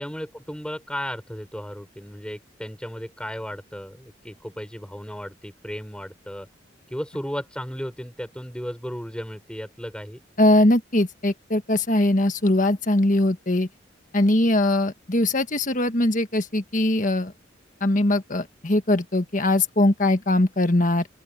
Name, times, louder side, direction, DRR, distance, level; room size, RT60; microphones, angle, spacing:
voice 1, 0.0-6.5 6.9-10.2, equal, 5° left, 6.2 m, -35 dB
voice 2, 10.4-13.7 14.1-17.3 17.8-21.1, left 1 dB, 40° left, 1.6 m, -21 dB
open air
head